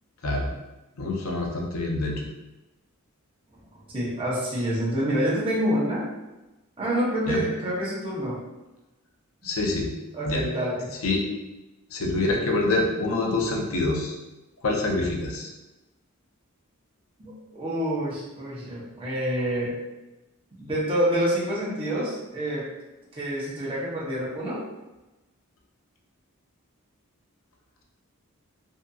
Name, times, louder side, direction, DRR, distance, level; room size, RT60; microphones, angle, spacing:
voice 1, 1.0-2.3 7.3-7.4 9.4-9.9 10.2-10.4 11.0-11.2 11.9-14.2 14.6-15.5, left 2 dB, 70° left, 0 dB, 0.5 m, -26 dB
voice 2, 3.9-6.0 6.8-8.4 10.1-10.9 17.2-19.7 20.6-22.7 23.1-24.6, equal, 25° right, -7 dB, 0.7 m, -27 dB
2.7 x 2.4 x 2.3 m, 1.0 s
head